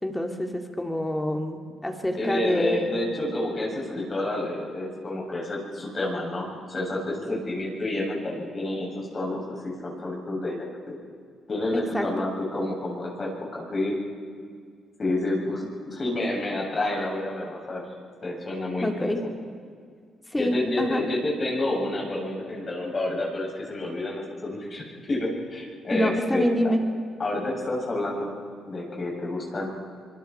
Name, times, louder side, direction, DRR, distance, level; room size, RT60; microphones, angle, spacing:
voice 1, 0.0-2.9 11.7-12.3 18.8-19.2 20.3-21.1 25.9-26.8, left 1 dB, 10° left, 3 dB, 2.9 m, -26 dB
voice 2, 2.2-11.0 11.5-14.0 15.0-17.8 18.2-18.9 19.2-19.3 20.4-26.5 27.2-28.3 28.6-29.7, left 1 dB, 35° left, -2 dB, 7.8 m, -29 dB
25.0 x 23.0 x 4.7 m, 2.1 s
cardioid pair, 90°, 0 cm